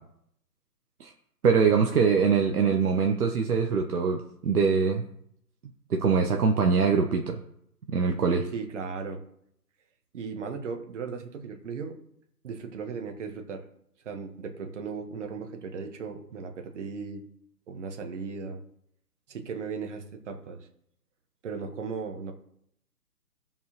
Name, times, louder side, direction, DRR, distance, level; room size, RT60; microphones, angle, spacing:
voice 1, 1.4-5.1 5.9-7.4 7.9-8.5, right 5 dB, 65° right, 2 dB, 1.0 m, -23 dB
voice 2, 8.5-9.2 10.1-12.0 12.4-13.6 14.0-17.2 17.7-18.6 19.3-20.6 21.4-22.3, right 5 dB, 45° right, 4 dB, 1.5 m, -36 dB
16.5 x 5.5 x 3.1 m, 0.72 s
figure-of-eight pair, 140°, 49 cm